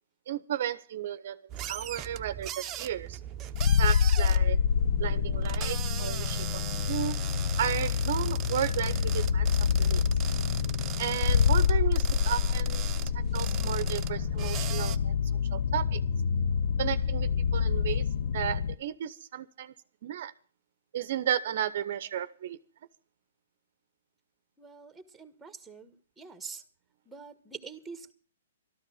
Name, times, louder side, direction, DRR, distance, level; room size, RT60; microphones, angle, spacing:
voice 1, 0.3-3.2 3.8-4.6 5.0-7.3 7.6-9.5 9.8-10.0 11.0-12.8 13.1-15.2 15.5-16.0 16.8-18.1 18.3-19.7 20.0-20.3 20.9-22.6, right 10 dB, 55° right, 14 dB, 0.8 m, -33 dB
sound 1, 1.5-15.0, right 11 dB, 25° right, 0.9 m, -39 dB
sound 2, 3.5-18.7, left 7 dB, 60° left, 0.8 m, -27 dB
voice 2, 24.6-24.9 25.2-25.9 26.2-26.6 27.1-28.1, right 5 dB, 5° right, 11 dB, 1.6 m, -45 dB
13.5 x 12.5 x 6.3 m, 0.40 s
hypercardioid pair, 130°, 0 cm